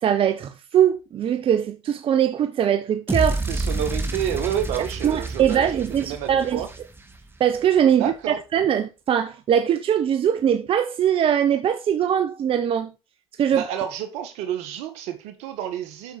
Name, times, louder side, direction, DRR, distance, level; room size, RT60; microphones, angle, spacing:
voice 1, 0.0-3.4 5.0-6.6 7.4-8.1 8.5-12.9 13.4-13.6, right 9 dB, 55° right, 0.8 m, -21 dB
sound 1, 3.1-7.3, right 2 dB, 20° right, 2.1 m, -29 dB
voice 2, 3.5-6.7 8.0-8.4 13.5-16.2, right 9 dB, 80° right, 1.6 m, -29 dB
7.9 x 6.3 x 4.2 m
hypercardioid pair, 60°, 11 cm